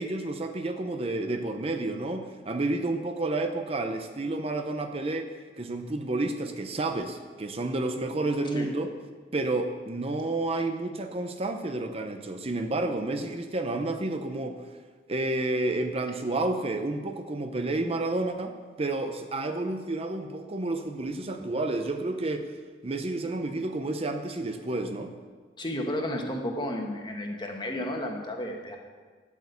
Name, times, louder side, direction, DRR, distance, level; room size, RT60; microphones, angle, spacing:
voice 1, 0.0-8.9 9.3-14.6 15.1-22.5 22.8-25.1, right 2 dB, 35° right, 6 dB, 0.7 m, -30 dB
voice 2, 25.6-28.8, left 1 dB, 25° left, 2 dB, 1.6 m, -32 dB
11.0 x 8.3 x 8.2 m, 1.5 s
head